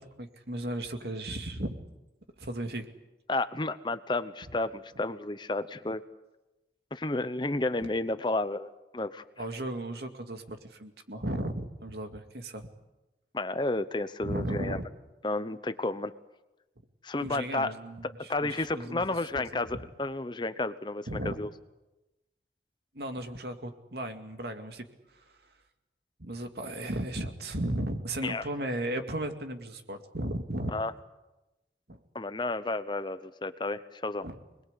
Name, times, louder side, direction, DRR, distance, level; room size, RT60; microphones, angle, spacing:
voice 1, 0.0-1.8 2.4-2.9 7.8-7.9 9.4-12.7 14.2-14.8 17.2-19.0 19.4-19.6 21.1-21.3 22.9-24.8 25.2-25.3 26.2-30.7 31.9-32.0 34.2-34.4, right 1 dB, 70° right, 6 dB, 2.4 m, -35 dB
voice 2, 3.3-6.0 6.9-9.2 13.3-14.8 15.2-16.1 17.0-17.7 18.0-21.5 28.2-28.4 30.7-30.9 32.1-34.2, left 2 dB, 25° left, 13 dB, 0.8 m, -32 dB
26.0 x 20.5 x 8.3 m, 1.0 s
head